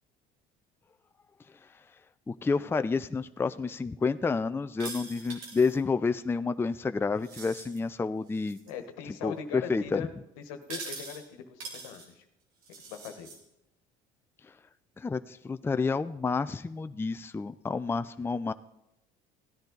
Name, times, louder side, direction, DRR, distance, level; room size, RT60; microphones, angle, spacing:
voice 1, 2.3-8.6 9.2-10.0 15.0-18.5, left 4 dB, 15° left, 11 dB, 0.4 m, -29 dB
sound 1, 4.8-5.8 7.2-7.8 8.3-8.7 10.6-11.2 11.6-12.1 12.6-13.4, right 3 dB, 85° right, 2.8 m, -43 dB
voice 2, 8.7-10.1 10.4-12.2 12.9-13.4, left 7 dB, 85° left, 7 dB, 1.3 m, -40 dB
16.0 x 10.5 x 3.9 m, 0.83 s
supercardioid pair, 80°, 18 cm